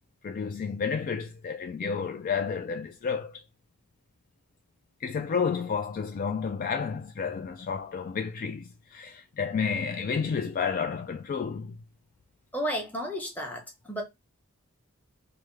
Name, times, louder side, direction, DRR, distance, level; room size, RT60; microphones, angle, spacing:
voice 1, 0.2-3.4 5.0-11.8, left 6 dB, 40° left, 0.3 m, -31 dB
voice 2, 12.5-14.0, equal, 10° left, 0.9 m, -32 dB
3.4 x 2.1 x 3.1 m
head